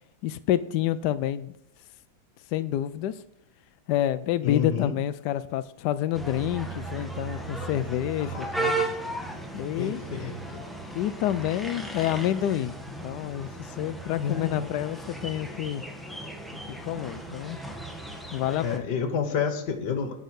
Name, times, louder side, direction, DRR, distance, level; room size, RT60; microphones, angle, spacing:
voice 1, 0.2-1.5 2.5-3.2 3.9-8.7 9.5-10.0 10.9-12.7 13.0-15.8 16.8-17.6 18.3-18.8, left 12 dB, 80° left, 13 dB, 0.9 m, -28 dB
voice 2, 4.4-4.9 8.2-8.9 9.8-10.6 14.2-14.7 18.6-20.1, left 6 dB, 55° left, 7 dB, 1.9 m, -30 dB
sound 1, 6.1-18.8, right 2 dB, ahead, 0.5 m, -36 dB
11.5 x 5.5 x 6.4 m, 0.74 s
omnidirectional pair, 2.3 m